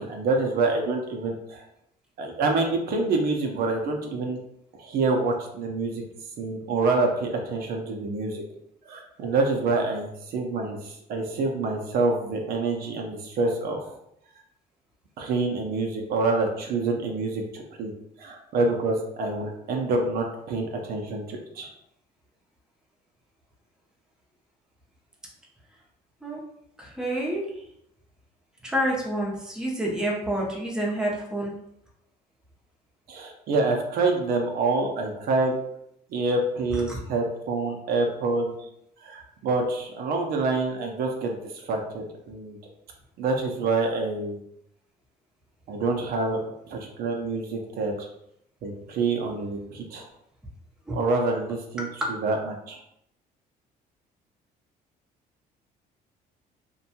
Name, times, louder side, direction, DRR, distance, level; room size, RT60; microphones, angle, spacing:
voice 1, 0.0-1.6 2.2-4.4 4.8-6.0 6.4-8.4 8.9-13.9 15.2-17.9 18.2-21.7 33.1-35.5 36.1-38.5 39.0-42.6 43.2-44.4 45.7-46.4 46.7-48.1 48.6-50.0 50.9-52.8, right 3 dB, 65° right, 1 dB, 0.5 m, -27 dB
voice 2, 26.8-27.4 28.6-31.5 36.7-37.0 50.9-51.0, right 1 dB, 5° right, -3 dB, 0.6 m, -28 dB
2.6 x 2.2 x 2.7 m, 0.77 s
cardioid pair, 110°, 17 cm